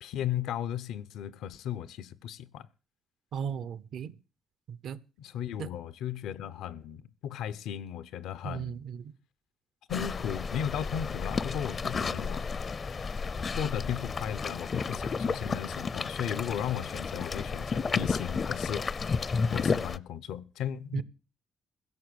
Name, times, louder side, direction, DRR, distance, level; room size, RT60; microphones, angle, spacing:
voice 1, 0.0-2.7 5.2-8.8 9.9-12.5 13.5-18.9 19.5-21.0, left 9 dB, 85° left, 0.8 m, -35 dB
voice 2, 3.3-4.1 4.7-5.0 5.6-5.7 8.4-9.1 20.9-21.0, right 7 dB, 70° right, 0.8 m, -36 dB
sound 1, 9.9-20.0, left 5 dB, 40° left, 0.6 m, -32 dB
16.0 x 6.8 x 8.0 m
cardioid pair, 90°, 0 cm